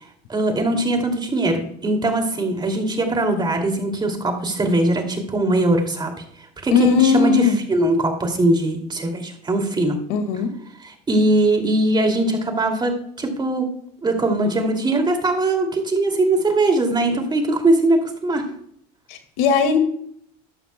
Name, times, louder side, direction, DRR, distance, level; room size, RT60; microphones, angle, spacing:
voice 1, 0.3-6.1 6.6-10.0 10.8-13.7 14.0-18.4, right 2 dB, 20° right, 4 dB, 2.6 m, -21 dB
voice 2, 6.7-7.6 10.1-10.5 19.1-19.8, left 6 dB, 75° left, 7 dB, 2.0 m, -18 dB
13.5 x 11.0 x 2.2 m, 0.65 s
supercardioid pair, 105°, 20 cm